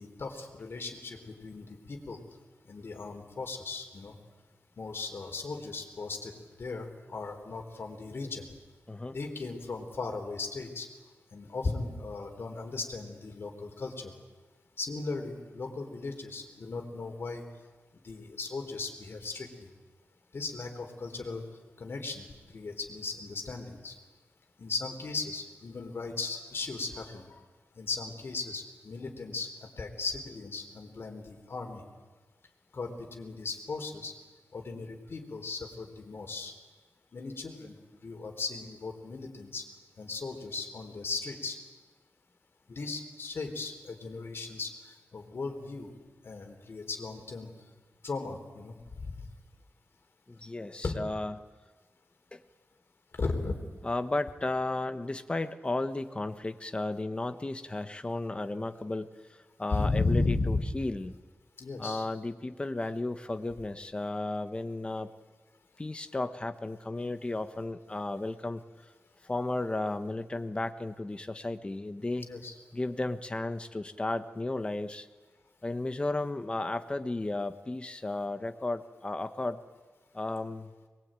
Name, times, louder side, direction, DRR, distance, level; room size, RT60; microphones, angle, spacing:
voice 1, 0.0-2.2 2.7-4.1 4.8-8.5 9.1-10.9 11.3-14.1 14.8-17.4 18.0-19.7 20.3-21.5 21.8-22.3 22.5-23.9 24.6-27.4 27.8-31.8 32.7-34.1 34.5-36.5 37.1-37.8 38.0-39.6 40.0-41.6 42.7-45.9 46.2-47.5 48.0-49.2 50.8-51.0 53.1-53.5 59.7-60.6 61.6-62.1 72.2-72.5, left 3 dB, 55° left, 3 dB, 3.9 m, -36 dB
voice 2, 50.3-51.3 52.3-52.4 53.8-59.1 59.6-61.1 61.8-65.1 65.8-68.6 69.2-72.3 72.7-75.1 75.6-79.6 80.1-80.7, left 2 dB, 25° left, 9 dB, 1.3 m, -34 dB
23.0 x 21.5 x 9.1 m, 1.3 s
wide cardioid pair, 115°, 5 cm